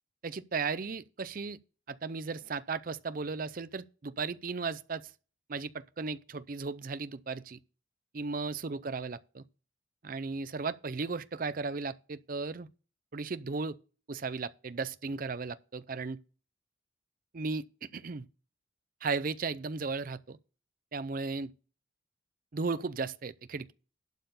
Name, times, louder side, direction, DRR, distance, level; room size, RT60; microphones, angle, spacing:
voice 1, 0.2-1.6 1.9-5.1 5.5-7.6 8.1-9.4 10.0-12.7 13.1-13.8 14.1-16.2 17.3-18.3 19.0-20.4 20.9-21.5 22.5-23.7, right 4 dB, 45° right, 0.5 m, -35 dB
11.5 x 4.4 x 6.8 m
head